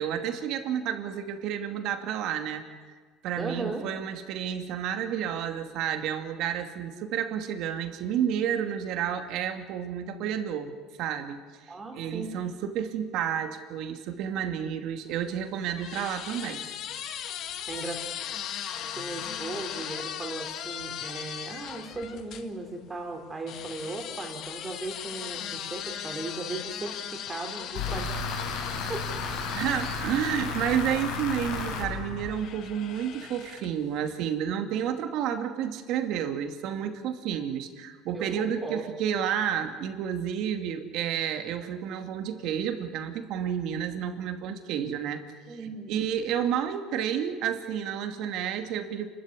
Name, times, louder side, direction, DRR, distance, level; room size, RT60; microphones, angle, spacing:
voice 1, 0.0-2.6 3.2-10.7 11.0-11.4 11.9-16.6 29.5-45.2 45.5-49.1, right 9 dB, 65° right, 6 dB, 2.4 m, -30 dB
voice 2, 3.4-3.8 11.7-12.3 17.7-18.0 18.9-28.1 28.9-29.2 38.1-38.8 45.5-46.0, right 2 dB, 20° right, 3 dB, 3.4 m, -37 dB
sound 1, 15.1-22.5 23.5-31.4 32.3-33.9, left 9 dB, 55° left, 1.7 m, -38 dB
sound 2, 27.8-32.7, left 4 dB, 80° left, 5.5 m, -33 dB
29.5 x 13.5 x 9.8 m, 1.5 s
cardioid pair, 130°, 0 cm